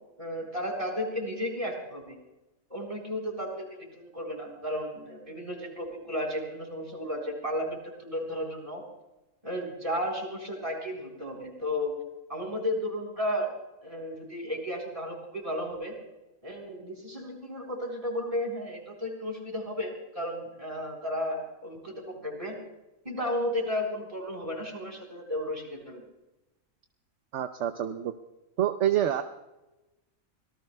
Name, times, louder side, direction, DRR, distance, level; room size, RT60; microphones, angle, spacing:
voice 1, 0.2-2.2 2.7-8.8 9.4-12.0 12.3-13.5 13.8-15.9 16.4-22.6 23.0-26.0, equal, 25° right, 0 dB, 4.2 m, -33 dB
voice 2, 27.3-28.1 28.6-29.2, right 11 dB, 65° right, 8 dB, 1.0 m, -27 dB
25.5 x 18.5 x 2.3 m, 1.0 s
omnidirectional pair, 1.4 m